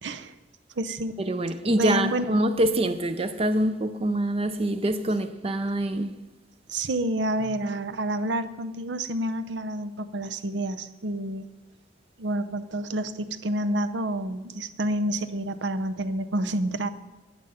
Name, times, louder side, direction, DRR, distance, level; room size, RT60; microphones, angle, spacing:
voice 1, 0.0-0.3 0.8-1.2 1.6-2.4 6.7-11.5 12.2-16.9, right 1 dB, 80° right, 0.7 m, -29 dB
voice 2, 1.2-6.2, right 1 dB, 35° right, 0.5 m, -25 dB
11.0 x 9.0 x 5.7 m
head